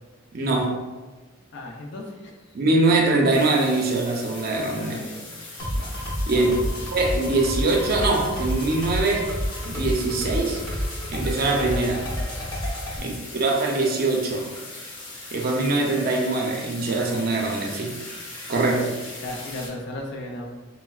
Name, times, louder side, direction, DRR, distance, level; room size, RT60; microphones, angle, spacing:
voice 1, 0.3-0.8 2.5-4.9 6.3-6.5 6.9-9.3 9.7-10.6 11.1-12.1 13.0-13.1 13.4-14.5 15.3-18.0 18.5-19.0, right 2 dB, 50° right, 1 dB, 0.5 m, -23 dB
voice 2, 1.5-2.5 4.8-5.3 5.7-6.0 6.3-6.8 13.0-13.2 19.2-20.5, left 2 dB, 55° left, 0 dB, 0.5 m, -36 dB
sound 1, 3.3-19.7, left 2 dB, 75° left, 0.9 m, -40 dB
sound 2, 5.6-13.0, equal, 20° left, 0.7 m, -29 dB
4.3 x 2.1 x 2.3 m, 1.3 s
head